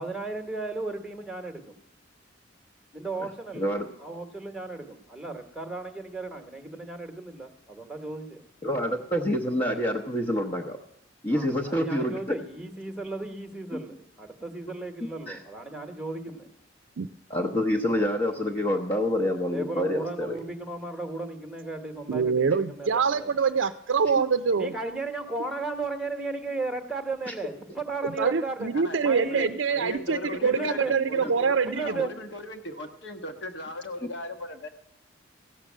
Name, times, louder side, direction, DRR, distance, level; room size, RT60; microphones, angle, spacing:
voice 1, 0.0-1.8 2.9-3.7 4.0-8.4 11.3-16.5 19.4-23.3 24.5-28.7 29.0-29.5 30.4-30.9 31.6-32.1, right 3 dB, 5° right, 5 dB, 1.1 m, -35 dB
voice 2, 3.5-3.9 8.6-10.8 11.2-12.4 13.7-13.8 15.3-15.4 17.3-20.4 27.3-27.4, equal, 25° left, -1 dB, 0.9 m, -27 dB
voice 3, 22.1-24.7 28.0-31.9, right 5 dB, 70° right, 9 dB, 0.5 m, -25 dB
voice 4, 29.2-34.7, left 1 dB, 60° left, 5 dB, 1.3 m, -38 dB
15.5 x 6.6 x 7.3 m, 0.86 s
head